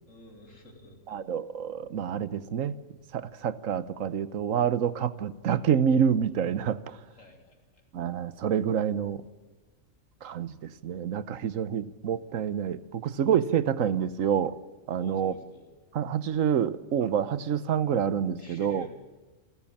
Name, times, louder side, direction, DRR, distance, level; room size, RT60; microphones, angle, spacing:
voice 1, 0.1-1.3 7.1-7.9 15.0-15.7 18.4-18.9, left 1 dB, 75° left, 3 dB, 3.9 m, -50 dB
voice 2, 1.1-2.8 3.1-7.0 7.9-9.2 10.2-14.6 14.9-15.3 15.9-18.9, right 8 dB, 85° right, 16 dB, 1.3 m, -27 dB
28.5 x 13.0 x 8.7 m, 1.2 s
omnidirectional pair, 1.3 m